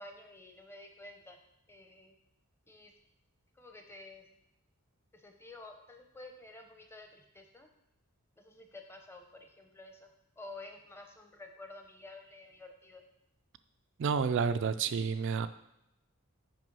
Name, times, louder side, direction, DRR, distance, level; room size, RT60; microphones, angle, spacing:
voice 1, 0.0-1.4 1.7-2.1 2.7-2.9 3.6-4.2 5.1-7.7 8.4-10.1 10.4-13.0, left 2 dB, 10° left, 4 dB, 0.7 m, -51 dB
voice 2, 14.0-15.5, right 6 dB, 55° right, 11 dB, 0.3 m, -30 dB
6.1 x 5.0 x 5.4 m, 0.83 s
head